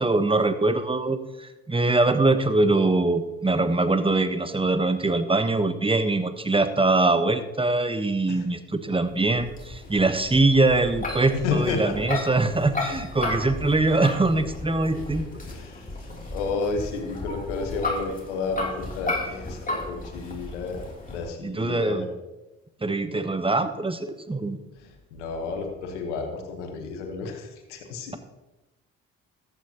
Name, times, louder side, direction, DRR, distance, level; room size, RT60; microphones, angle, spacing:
voice 1, 0.0-15.2 21.4-22.1 22.8-24.6, right 2 dB, 15° right, 10 dB, 1.2 m, -23 dB
sound 1, 9.2-21.3, left 2 dB, 25° left, 3.2 m, -34 dB
voice 2, 11.3-12.0 15.4-22.1 24.8-28.1, left 4 dB, 90° left, 4 dB, 1.3 m, -31 dB
14.0 x 10.0 x 3.0 m, 1.0 s
hypercardioid pair, 45°, 35 cm